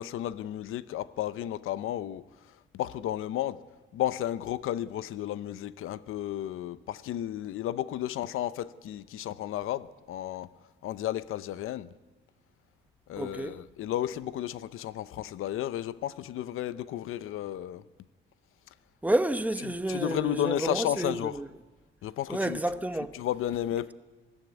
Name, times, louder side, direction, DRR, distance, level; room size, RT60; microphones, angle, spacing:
voice 1, 0.0-2.2 2.7-3.6 3.9-10.5 10.8-11.9 13.1-17.8 19.6-21.4 22.0-22.6 23.1-23.9, left 12 dB, 90° left, 0.8 m, -33 dB
voice 2, 13.2-13.6 19.0-21.5 22.3-23.1, right 1 dB, 5° right, 0.9 m, -30 dB
20.5 x 15.5 x 9.4 m
cardioid pair, 145°, 21 cm